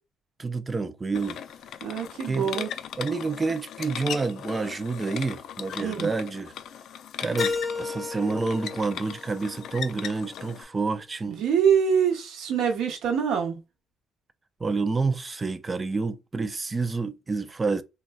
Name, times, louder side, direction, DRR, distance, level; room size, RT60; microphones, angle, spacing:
voice 1, 0.4-1.4 2.3-2.7 3.0-6.5 7.2-11.4 14.6-17.8, right 4 dB, 20° right, 0.4 m, -28 dB
sound 1, 1.1-10.6, left 9 dB, 70° left, 0.3 m, -38 dB
voice 2, 1.8-2.7 5.8-6.1 11.3-13.6, right 7 dB, 90° right, 0.9 m, -24 dB
Keyboard (musical), 7.4-10.3, left 4 dB, 25° left, 0.6 m, -34 dB
3.7 x 2.2 x 2.2 m
cardioid pair, 120°, 0 cm